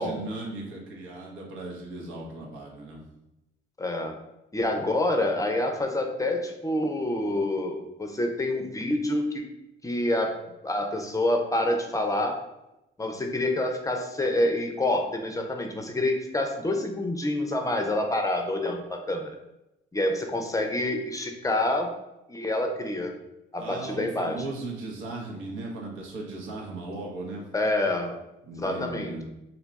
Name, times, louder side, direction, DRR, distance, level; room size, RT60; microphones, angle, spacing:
voice 1, 0.0-3.0 23.6-27.5 28.5-29.2, right 2 dB, 85° right, -2 dB, 0.9 m, -37 dB
voice 2, 3.8-4.2 4.5-9.4 9.8-12.4 13.0-19.3 19.9-21.9 22.3-23.1 23.5-24.4 27.5-28.2 28.6-29.2, left 1 dB, 15° left, 4 dB, 0.5 m, -27 dB
2.8 x 2.2 x 3.9 m, 0.91 s
cardioid pair, 90°, 20 cm